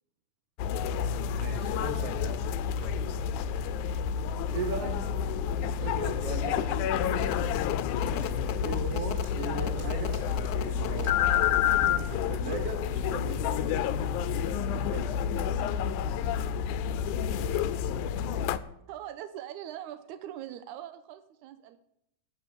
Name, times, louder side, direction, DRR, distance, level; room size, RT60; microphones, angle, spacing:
sound 1, 0.6-18.6, left 8 dB, 85° left, 2.1 m, -29 dB
voice 1, 1.3-2.4 2.8-3.1 4.5-5.0 5.8-7.5 8.6-10.2 10.6-13.5 17.4-17.6, right 4 dB, 55° right, 5 dB, 2.9 m, -38 dB
sound 2, 7.1-12.3, left 1 dB, 25° right, 4.1 m, -44 dB
voice 2, 14.7-15.1 18.6-21.8, right 11 dB, 90° right, 10 dB, 2.1 m, -42 dB
17.0 x 6.4 x 6.8 m, 0.78 s
omnidirectional pair, 3.4 m